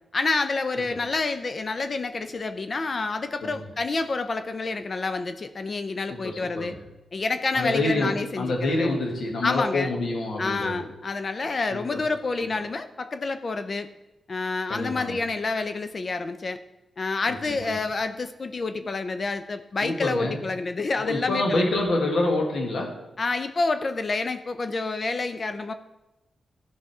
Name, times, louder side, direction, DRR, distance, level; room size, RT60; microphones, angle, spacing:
voice 1, 0.1-6.8 7.1-8.9 9.4-9.9 10.4-13.9 14.3-16.6 17.0-21.7 23.2-25.7, left 3 dB, 50° left, 10 dB, 0.6 m, -28 dB
voice 2, 6.1-6.8 7.5-10.8 11.7-12.0 14.7-15.2 17.3-17.8 19.8-20.4 21.0-23.1, left 2 dB, 80° left, 1 dB, 2.0 m, -27 dB
13.0 x 5.7 x 4.9 m, 0.99 s
cardioid pair, 65°, 0 cm